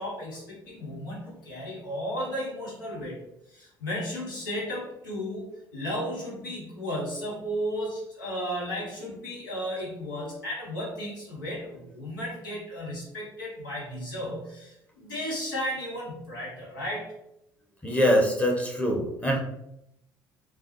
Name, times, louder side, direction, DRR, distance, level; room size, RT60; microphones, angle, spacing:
voice 1, 0.0-3.2 3.5-17.1, equal, 85° left, -4 dB, 0.9 m, -34 dB
voice 2, 17.8-19.4, equal, 10° left, 0 dB, 0.8 m, -23 dB
3.2 x 2.0 x 3.0 m, 0.83 s
hypercardioid pair, 60°, 10 cm